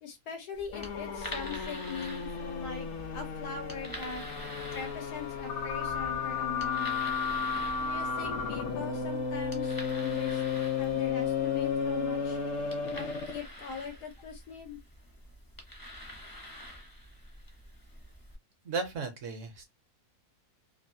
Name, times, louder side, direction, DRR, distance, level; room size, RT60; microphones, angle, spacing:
voice 1, 0.0-2.9 3.1-4.2 4.7-7.1 7.8-10.4 10.8-12.4 12.9-14.8, left 5 dB, 85° left, 1.4 m, -41 dB
sound 1, 0.5-18.4, equal, 20° left, 0.6 m, -46 dB
sound 2, 0.7-13.4, left 6 dB, 55° left, 0.9 m, -33 dB
voice 2, 18.6-19.6, right 4 dB, 60° right, 0.9 m, -35 dB
3.1 x 2.5 x 2.6 m
omnidirectional pair, 1.6 m